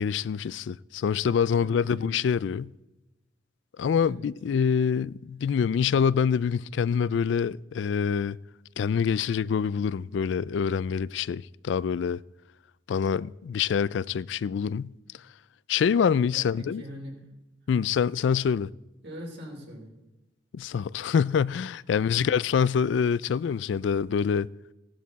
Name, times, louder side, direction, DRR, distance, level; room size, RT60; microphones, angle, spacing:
voice 1, 0.0-2.7 3.8-8.4 8.8-12.2 12.9-14.9 15.7-16.8 17.7-18.7 20.5-24.5, left 7 dB, 65° left, 0.3 m, -25 dB
voice 2, 1.6-2.1 4.0-4.3 16.3-17.3 17.6-17.8 19.0-19.9 22.1-22.3, equal, 65° right, 4.2 m, -42 dB
16.0 x 12.0 x 4.1 m
head